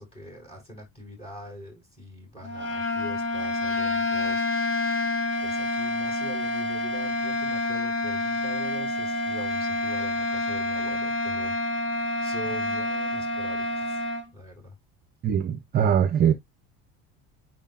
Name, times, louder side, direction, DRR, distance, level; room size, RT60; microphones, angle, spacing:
voice 1, 0.0-4.5 5.4-11.6 12.2-14.0 14.3-14.8, equal, 20° left, 5.4 m, -43 dB
sound 1, 2.4-14.3, left 2 dB, 35° left, 1.7 m, -28 dB
voice 2, 15.2-16.3, right 8 dB, 30° right, 0.6 m, -22 dB
9.8 x 4.5 x 2.4 m
cardioid pair, 160°, 33 cm